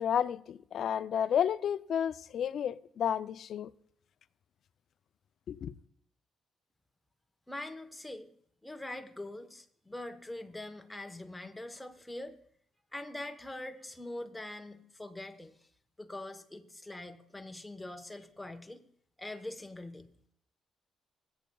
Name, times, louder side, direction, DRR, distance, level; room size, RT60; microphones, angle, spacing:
voice 1, 0.0-3.7 5.5-5.7, left 9 dB, 65° left, 0.4 m, -31 dB
voice 2, 7.5-8.3 8.6-12.4 12.9-15.5 16.0-18.8 19.2-20.0, left 1 dB, 10° left, 1.0 m, -43 dB
25.0 x 8.3 x 2.3 m
cardioid pair, 90°, 0 cm